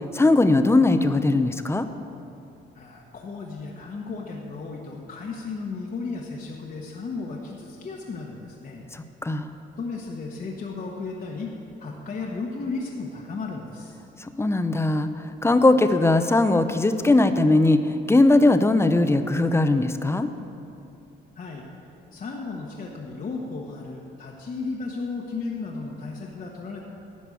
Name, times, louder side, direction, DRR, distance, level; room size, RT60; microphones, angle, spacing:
voice 1, 0.1-1.9 8.9-9.5 14.2-20.3, left 2 dB, 15° left, 10 dB, 0.6 m, -20 dB
voice 2, 2.7-8.8 9.8-11.5 11.8-14.0 21.3-21.7 22.1-26.8, left 4 dB, 45° left, -1 dB, 1.2 m, -34 dB
11.0 x 5.3 x 8.4 m, 2.8 s
cardioid pair, 90°, 20 cm